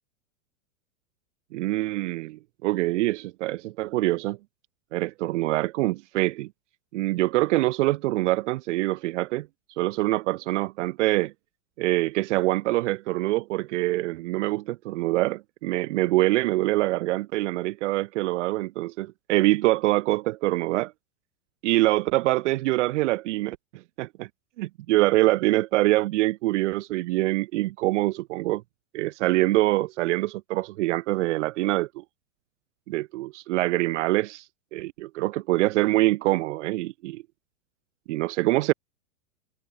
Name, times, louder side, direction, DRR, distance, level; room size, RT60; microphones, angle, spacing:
voice 1, 1.5-4.4 4.9-6.5 6.9-9.5 9.8-11.3 11.8-20.9 21.6-23.6 24.0-24.3 24.6-28.6 28.9-32.0 32.9-34.4 34.7-37.2 38.1-38.7, right 18 dB, 60° right, 1.9 m, -25 dB
supercardioid pair, 135°, 40 cm